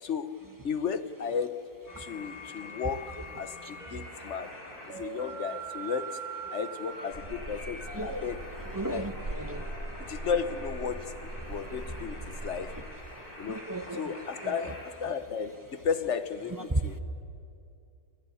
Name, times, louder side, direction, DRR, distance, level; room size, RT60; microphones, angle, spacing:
voice 1, 0.0-1.6 2.0-4.5 5.0-6.2 6.5-8.4 8.9-9.1 10.1-11.0 11.5-12.7 13.4-13.6 13.9-17.0, left 6 dB, 50° left, 12 dB, 1.2 m, -34 dB
sound 1, 1.9-14.8, right 1 dB, 65° left, 5.9 m, -43 dB
sound 2, 7.1-12.8, right 1 dB, 40° right, 4.0 m, -41 dB
voice 2, 7.9-8.3 8.7-9.6 13.5-14.1 14.4-14.6 16.7-16.8, right 1 dB, 15° right, 8 dB, 0.8 m, -33 dB
29.5 x 21.0 x 8.4 m, 2.6 s
omnidirectional pair, 1.7 m